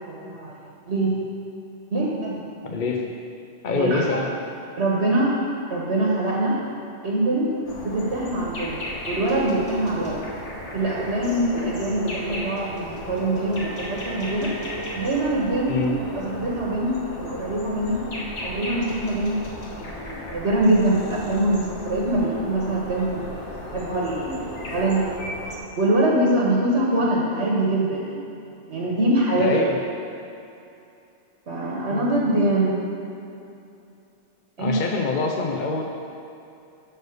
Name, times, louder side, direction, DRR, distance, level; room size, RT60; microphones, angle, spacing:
voice 1, 0.1-1.2 1.9-2.4 3.7-4.2 4.8-5.4 5.7-6.6 7.0-8.8 9.1-10.2 10.7-14.5 15.0-15.8 16.1-18.1 18.4-19.4 19.7-23.3 23.6-25.0 25.8-28.2 28.7-29.6 31.5-32.8 34.6-34.8, right 1 dB, 70° right, -4 dB, 1.5 m, -23 dB
voice 2, 2.6-3.0 3.6-4.3 15.7-15.9 29.3-29.8 34.6-35.8, left 4 dB, 50° left, 1 dB, 0.8 m, -25 dB
sound 1, 7.6-25.6, left 1 dB, 90° left, 1.7 m, -35 dB
11.5 x 4.4 x 6.6 m, 2.7 s
omnidirectional pair, 1.1 m